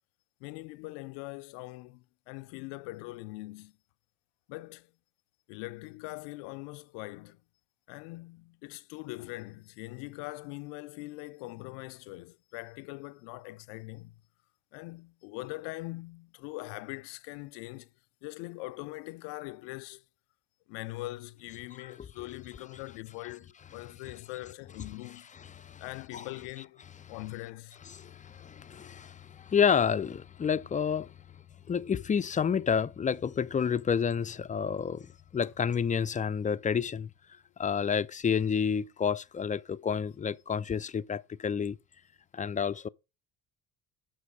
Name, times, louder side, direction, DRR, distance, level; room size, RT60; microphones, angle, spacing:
voice 1, 0.4-3.7 4.5-4.9 5.5-7.4 7.9-14.2 14.7-17.9 18.2-20.0 20.7-25.3 25.8-27.8, left 21 dB, 75° left, 0.6 m, -42 dB
voice 2, 25.3-25.8 26.1-26.2 27.9-31.1 31.7-37.1 37.6-41.8 42.3-42.9, left 7 dB, 20° left, 0.4 m, -29 dB
7.3 x 5.9 x 4.7 m
hypercardioid pair, 55°, 44 cm